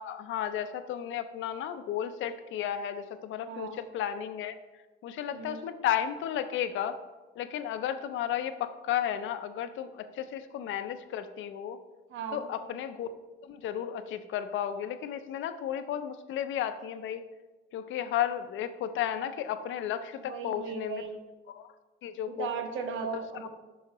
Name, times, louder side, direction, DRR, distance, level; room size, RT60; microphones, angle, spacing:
voice 1, 0.0-4.5 5.0-7.0 7.4-11.8 12.3-13.1 13.4-17.2 17.7-21.0 21.6-21.7 22.0-22.5 23.1-23.2, left 10 dB, 75° left, 11 dB, 0.5 m, -33 dB
voice 2, 3.5-3.8 5.3-5.6 12.1-12.5 20.3-21.2 22.3-23.5, right 5 dB, 80° right, 6 dB, 0.8 m, -36 dB
6.1 x 5.6 x 2.9 m, 1.2 s
cardioid pair, 90°, 20 cm